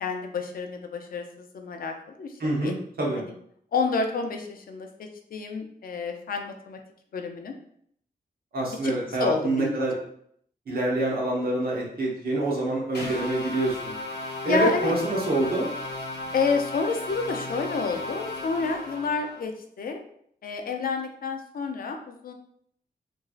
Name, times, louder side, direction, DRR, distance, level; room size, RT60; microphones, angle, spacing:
voice 1, 0.0-2.7 3.2-3.3 3.7-4.9 5.3-6.8 7.1-7.5 8.7-9.8 14.5-14.9 16.3-20.0 20.4-22.3, left 4 dB, 60° left, 5 dB, 0.4 m, -29 dB
voice 2, 2.4-3.2 8.5-10.0 10.7-13.9 14.4-15.7, right 2 dB, 65° right, -4 dB, 1.0 m, -26 dB
sound 1, 12.9-19.4, left 2 dB, 85° left, 0.8 m, -35 dB
3.0 x 2.6 x 2.4 m, 0.67 s
wide cardioid pair, 115°, 17 cm